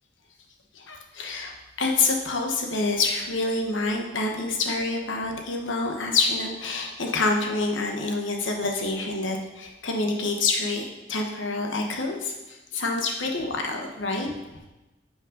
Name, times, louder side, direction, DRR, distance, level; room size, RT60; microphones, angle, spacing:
voice 1, 0.7-10.8 11.1-14.4, left 3 dB, 80° left, 2 dB, 1.2 m, -27 dB
10.5 x 5.4 x 3.9 m, 1.0 s
head